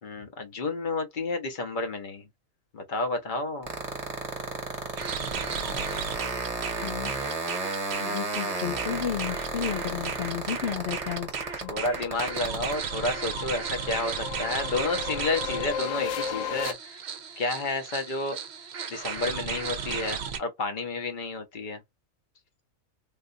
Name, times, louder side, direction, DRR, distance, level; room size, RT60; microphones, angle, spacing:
voice 1, 0.0-2.3 2.7-3.7 11.7-17.0 17.4-18.4 18.9-21.8, left 3 dB, 40° left, 0.9 m, -31 dB
sound 1, 3.6-12.7, right 3 dB, 30° right, 1.2 m, -32 dB
sound 2, 5.0-20.4, right 7 dB, 55° right, 0.9 m, -35 dB
voice 2, 8.0-11.3 11.6-11.7, left 9 dB, 60° left, 0.7 m, -32 dB
sound 3, 10.5-16.7, left 7 dB, 75° left, 1.1 m, -36 dB
3.8 x 2.5 x 2.5 m
omnidirectional pair, 1.5 m